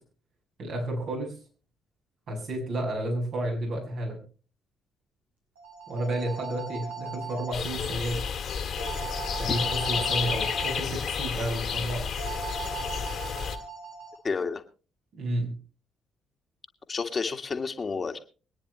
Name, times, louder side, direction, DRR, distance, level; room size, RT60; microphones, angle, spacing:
voice 1, 0.6-1.3 2.3-4.2 5.9-8.2 9.4-12.0 15.1-15.6, right 1 dB, 60° right, 0 dB, 6.3 m, -31 dB
sound 1, 5.6-7.5 8.8-10.8 12.2-14.2, right 4 dB, 90° right, 5.2 m, -38 dB
sound 2, 7.5-13.6, left 7 dB, 55° left, 2.0 m, -31 dB
voice 2, 14.2-14.6 16.9-18.2, left 5 dB, 40° left, 6 dB, 1.9 m, -30 dB
24.0 x 9.9 x 3.1 m, 0.36 s
hypercardioid pair, 45°, 0 cm